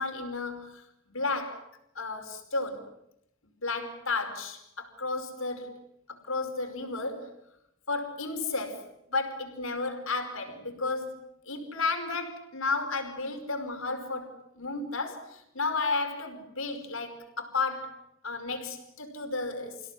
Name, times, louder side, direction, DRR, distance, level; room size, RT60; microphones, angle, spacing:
voice 1, 0.0-1.7 2.0-2.9 3.6-5.8 6.1-7.3 7.9-19.8, left 3 dB, 80° left, 5.2 m, -33 dB
29.5 x 17.0 x 10.0 m
head